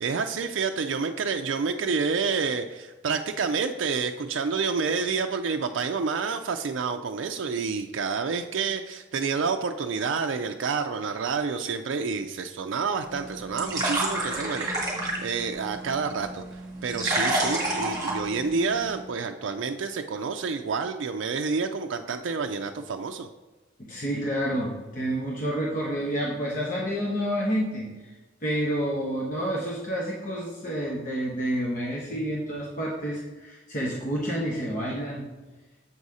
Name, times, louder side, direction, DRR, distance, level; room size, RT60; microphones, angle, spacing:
voice 1, 0.0-23.3, right 5 dB, 75° right, 5 dB, 0.4 m, -29 dB
sound 1, 13.0-19.0, right 2 dB, 20° right, 1.7 m, -30 dB
voice 2, 23.8-28.1 28.4-35.3, equal, 40° left, -4 dB, 1.1 m, -29 dB
7.1 x 4.1 x 4.8 m, 1.2 s
head